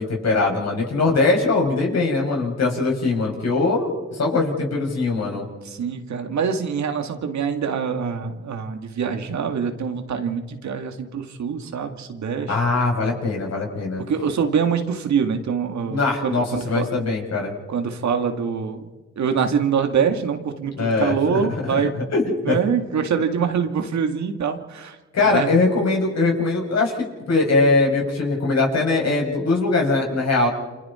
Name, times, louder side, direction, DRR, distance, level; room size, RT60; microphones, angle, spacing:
voice 1, 0.0-5.5 12.5-14.0 15.9-17.5 20.8-22.6 25.1-30.5, left 3 dB, 60° left, -1 dB, 7.0 m, -21 dB
voice 2, 5.6-12.6 14.1-16.9 17.7-18.9 19.2-22.1 22.4-25.0 25.3-25.5, right 6 dB, 70° right, 6 dB, 2.2 m, -24 dB
29.5 x 26.0 x 4.4 m, 1.2 s
cardioid pair, 60°, 29 cm